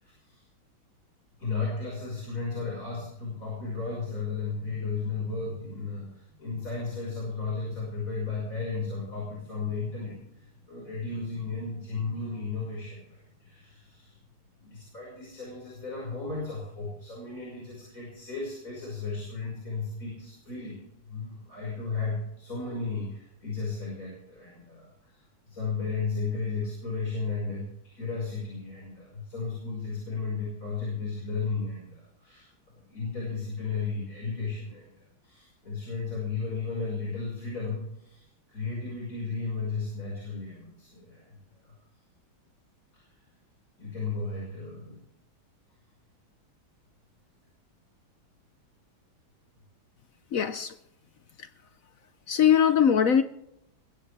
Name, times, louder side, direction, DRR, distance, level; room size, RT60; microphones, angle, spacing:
voice 1, 0.0-0.4 1.4-14.1 14.6-20.8 21.0-41.3 41.6-41.8 42.9-43.0 43.8-45.0, left 4 dB, 40° left, 6.1 m, -34 dB
voice 2, 50.3-50.7 51.4-51.5 52.3-53.2, left 8 dB, 65° left, 0.8 m, -21 dB
22.0 x 16.0 x 3.5 m
omnidirectional pair, 2.2 m